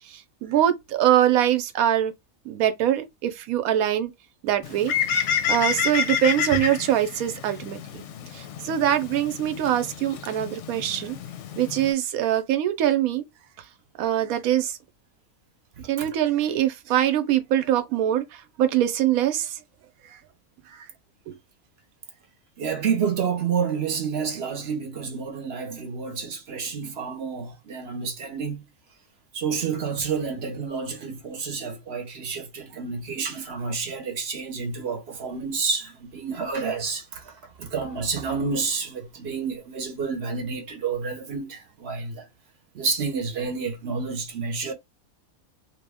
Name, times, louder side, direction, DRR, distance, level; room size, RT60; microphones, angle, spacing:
voice 1, 0.1-2.1 2.5-4.1 4.4-7.8 8.3-11.2 11.6-13.2 14.0-14.8 15.9-18.2 18.6-19.6, right 11 dB, 85° right, 1.1 m, -23 dB
Bird, 4.6-11.9, left 8 dB, 70° left, 0.8 m, -29 dB
voice 2, 15.8-16.1 22.6-28.6 29.3-42.3 42.7-44.7, right 5 dB, 55° right, 0.9 m, -29 dB
3.1 x 2.1 x 3.4 m
omnidirectional pair, 1.5 m